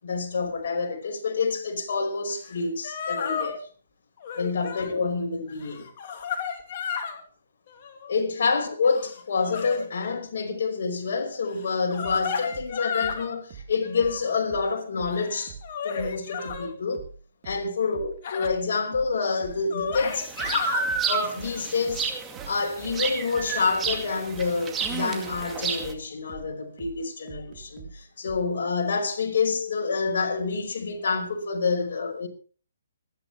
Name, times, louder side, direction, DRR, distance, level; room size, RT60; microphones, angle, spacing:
voice 1, 0.0-3.7 4.4-5.9 8.1-15.6 15.8-17.0 17.4-20.3 21.1-22.1 22.5-32.3, left 4 dB, 60° left, 5.2 m, -27 dB
sound 1, 2.5-2.6 2.8-3.6 4.2-4.9 5.5-7.2 7.7-8.2 8.8-10.2 11.6-13.4 13.8-14.4 15.0-16.7 18.2-18.5 19.2-19.3 19.5-20.9 21.5-21.6, left 6 dB, 45° left, 2.8 m, -32 dB
sound 2, 12.0-15.2 15.5-28.5, right 6 dB, 35° right, 3.4 m, -43 dB
sound 3, 20.0-25.9, right 5 dB, 15° right, 2.1 m, -31 dB
25.5 x 10.5 x 3.4 m
hypercardioid pair, 145°, 0 cm